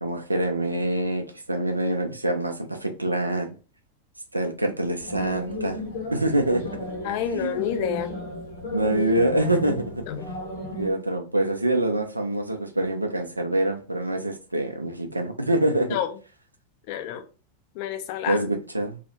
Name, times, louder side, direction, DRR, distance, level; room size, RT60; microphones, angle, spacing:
voice 1, 0.0-3.5 4.3-5.8 6.1-6.6 7.3-7.5 8.7-10.0 10.8-16.0 18.3-19.0, right 1 dB, 85° right, 0.4 m, -25 dB
sound 1, 5.0-10.9, left 1 dB, 60° left, 0.8 m, -33 dB
voice 2, 7.0-8.1 15.9-16.1 16.9-17.2 17.8-18.4, left 10 dB, 45° left, 0.4 m, -28 dB
2.3 x 2.1 x 2.8 m
figure-of-eight pair, 90°, 0 cm